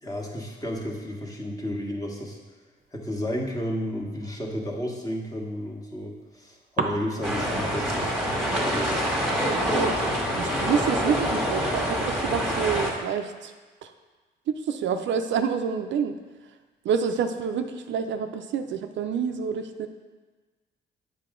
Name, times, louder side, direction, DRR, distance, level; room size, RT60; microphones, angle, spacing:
voice 1, 0.0-2.4 2.9-8.2 8.5-9.1 10.7-10.9, equal, 20° left, -2 dB, 1.4 m, -32 dB
sound 1, 2.8-5.0 5.5-6.4 6.8-12.2, right 4 dB, 40° right, 0.8 m, -39 dB
sound 2, 7.2-12.9, equal, ahead, 1.6 m, -26 dB
voice 2, 9.4-10.0 10.4-13.5 13.8-13.9 14.5-16.1 16.8-19.9, right 7 dB, 70° right, 7 dB, 0.5 m, -28 dB
7.6 x 5.3 x 3.8 m, 1.3 s
cardioid pair, 90°, 20 cm